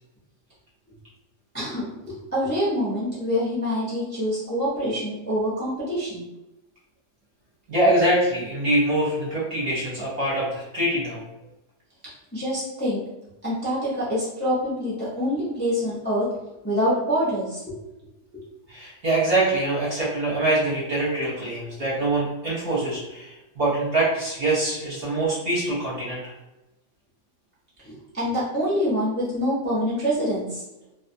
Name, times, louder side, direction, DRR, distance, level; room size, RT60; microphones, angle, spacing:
voice 1, 1.5-6.2 12.3-13.0 13.4-16.3 16.6-17.7 27.8-30.6, equal, 15° left, -8 dB, 0.4 m, -26 dB
voice 2, 7.7-11.2 18.7-26.2, right 1 dB, 45° right, -7 dB, 0.8 m, -24 dB
2.4 x 2.4 x 2.6 m, 0.94 s
omnidirectional pair, 1.7 m